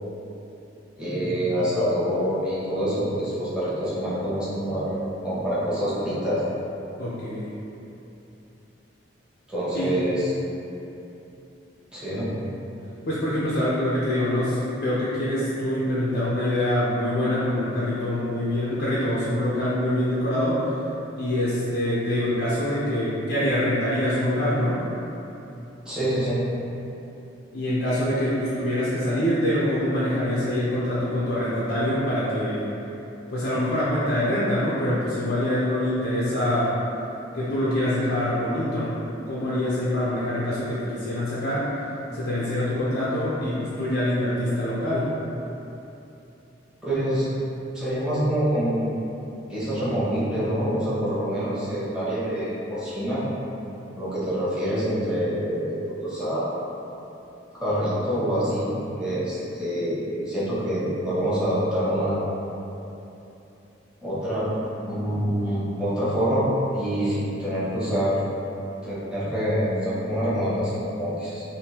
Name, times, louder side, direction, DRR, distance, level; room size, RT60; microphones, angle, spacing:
voice 1, 1.0-5.0 5.2-6.4 9.5-10.3 11.9-12.3 25.8-26.4 46.8-47.3 47.7-48.9 49.5-53.2 54.0-56.4 57.6-62.3 64.0-64.5 64.9-66.5 66.7-68.2 68.8-71.4, equal, 5° right, -12 dB, 1.0 m, -26 dB
voice 2, 7.0-7.5 9.7-10.0 13.1-20.8 21.2-24.9 27.5-32.7 33.3-36.8 37.3-38.9 39.3-41.7 42.1-45.2, left 1 dB, 65° left, -9 dB, 0.6 m, -25 dB
3.5 x 2.6 x 2.8 m, 2.9 s
head